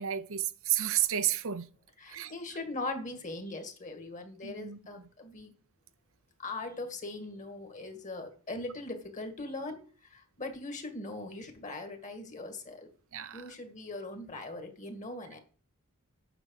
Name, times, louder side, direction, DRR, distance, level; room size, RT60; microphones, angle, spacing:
voice 1, 0.0-1.7 2.1-2.3 4.4-4.8 13.1-13.4, right 11 dB, 65° right, 0.7 m, -31 dB
voice 2, 2.0-5.5 6.4-12.9 13.3-15.4, left 2 dB, 35° left, 2.1 m, -40 dB
8.9 x 6.2 x 6.5 m
head